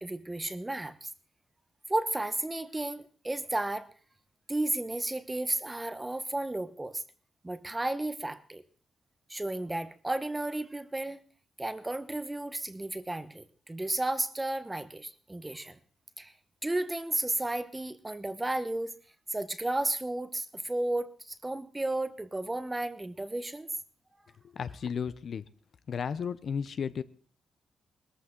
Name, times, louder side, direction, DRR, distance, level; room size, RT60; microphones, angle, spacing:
voice 1, 0.0-1.1 1.9-3.9 4.5-7.0 7.4-8.6 9.3-11.2 11.6-15.8 16.2-16.3 16.6-18.9 19.3-23.7, right 2 dB, 15° right, 13 dB, 0.9 m, -33 dB
voice 2, 24.5-25.4 25.9-27.0, left 6 dB, 55° left, 14 dB, 0.7 m, -33 dB
20.5 x 14.0 x 3.8 m, 0.39 s
cardioid pair, 125°, 0 cm